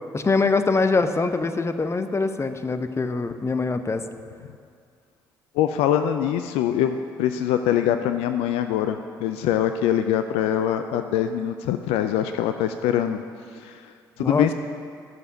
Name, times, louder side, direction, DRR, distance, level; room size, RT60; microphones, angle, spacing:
voice 1, 0.1-4.0 14.2-14.5, left 3 dB, 25° left, 8 dB, 0.8 m, -23 dB
voice 2, 5.5-13.2 13.6-13.8 14.2-14.5, left 10 dB, 70° left, 8 dB, 0.4 m, -23 dB
12.0 x 6.8 x 7.1 m, 2.3 s
figure-of-eight pair, 45°, 11 cm